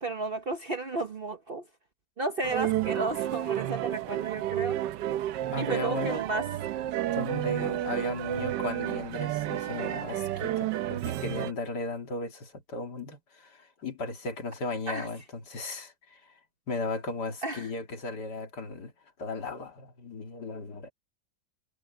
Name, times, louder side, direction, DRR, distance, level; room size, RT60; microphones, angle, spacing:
voice 1, 0.0-1.6 2.2-4.8 5.6-6.4 14.9-15.1 17.4-17.7, right 3 dB, 40° right, 1.0 m, -33 dB
sound 1, 2.4-11.5, right 13 dB, 80° right, 1.3 m, -31 dB
voice 2, 5.5-6.3 7.1-16.3 16.7-18.9 19.2-20.9, left 3 dB, 70° left, 3.0 m, -36 dB
omnidirectional pair, 1.9 m